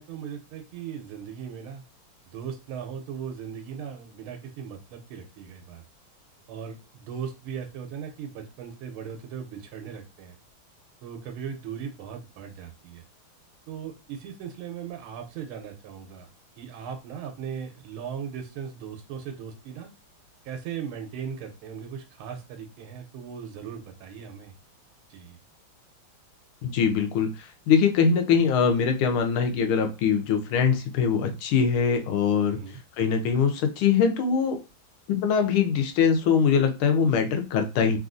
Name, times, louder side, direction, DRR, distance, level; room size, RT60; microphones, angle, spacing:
voice 1, 0.0-1.8 2.3-5.8 6.5-10.4 11.0-13.0 13.7-16.3 16.6-19.9 20.4-24.5 25.1-25.4 32.5-32.8, right 7 dB, 90° right, 4 dB, 1.5 m, -38 dB
voice 2, 26.6-32.6 33.0-34.6 35.1-38.0, left 6 dB, 85° left, 6 dB, 1.5 m, -22 dB
3.7 x 2.4 x 2.5 m, 0.28 s
omnidirectional pair, 2.3 m